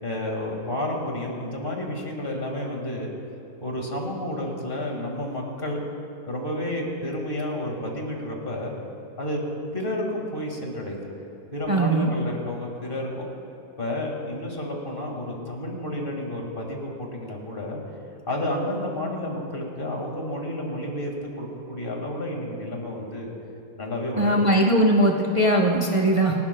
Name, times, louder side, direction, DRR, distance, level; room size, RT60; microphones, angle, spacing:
voice 1, 0.0-3.1 3.6-5.8 6.3-8.7 9.2-9.4 9.7-11.0 11.5-13.3 13.8-17.8 18.3-21.1 21.4-23.3 23.8-24.3, left 1 dB, 35° left, 0 dB, 2.1 m, -30 dB
voice 2, 11.7-12.1 24.2-26.3, right 1 dB, 30° right, -1 dB, 0.6 m, -20 dB
27.0 x 12.5 x 2.2 m, 2.9 s
omnidirectional pair, 1.7 m